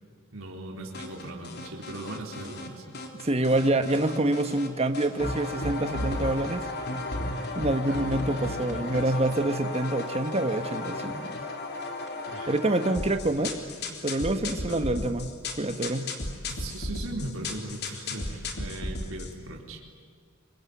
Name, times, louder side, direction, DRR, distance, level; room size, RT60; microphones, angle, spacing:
voice 1, 0.3-3.0 3.4-3.6 7.8-8.4 8.7-9.4 12.3-12.8 13.1-13.4 14.6-14.9 16.5-19.8, right 2 dB, 85° right, 0 dB, 4.1 m, -39 dB
sound 1, 0.9-2.7 2.9-4.7 4.9-19.3, left 2 dB, 55° left, 3.5 m, -34 dB
voice 2, 3.1-6.6 7.5-11.4 12.5-13.6 14.0-15.3 15.6-16.1, right 2 dB, 30° right, 8 dB, 1.4 m, -26 dB
26.0 x 23.0 x 9.6 m, 2.1 s
head